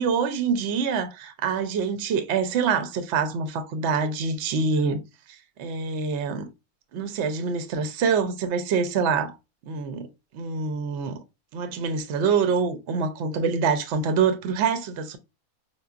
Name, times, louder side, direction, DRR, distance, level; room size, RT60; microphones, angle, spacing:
voice 1, 0.0-5.0 5.6-6.5 6.9-9.4 9.7-10.1 10.3-11.2 11.5-15.2, right 5 dB, 65° right, 0.7 m, -25 dB
5.3 x 2.0 x 2.3 m
omnidirectional pair, 1.5 m